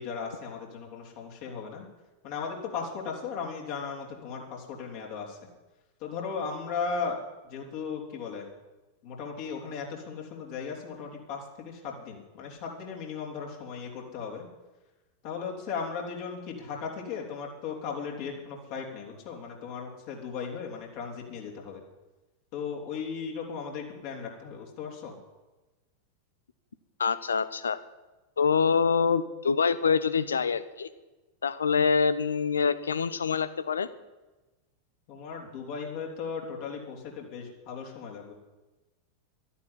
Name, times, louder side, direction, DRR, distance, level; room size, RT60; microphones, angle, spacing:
voice 1, 0.0-1.8 2.2-5.4 6.0-7.2 7.4-8.5 9.0-14.5 15.2-21.8 22.5-25.1 35.1-38.3, left 5 dB, 45° left, 0 dB, 3.6 m, -36 dB
voice 2, 27.0-27.8 28.4-30.9 31.4-33.9, left 6 dB, 70° left, 14 dB, 0.9 m, -25 dB
12.0 x 11.0 x 9.9 m, 1.1 s
figure-of-eight pair, 90°, 0 cm